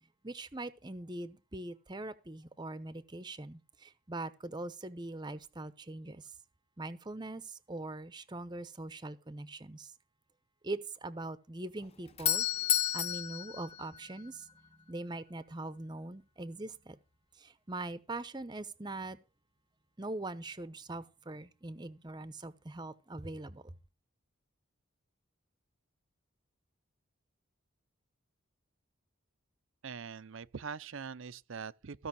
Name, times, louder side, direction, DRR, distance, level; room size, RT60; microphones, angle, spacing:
voice 1, 0.2-6.3 6.8-9.9 10.6-12.5 12.9-14.5 14.9-17.0 17.4-19.2 20.0-23.7, right 2 dB, 20° right, 0.8 m, -42 dB
Doorbell, 11.8-14.7, left 10 dB, 30° left, 0.6 m, -32 dB
voice 2, 29.8-32.1, right 5 dB, 65° right, 0.6 m, -42 dB
15.5 x 5.6 x 6.9 m
head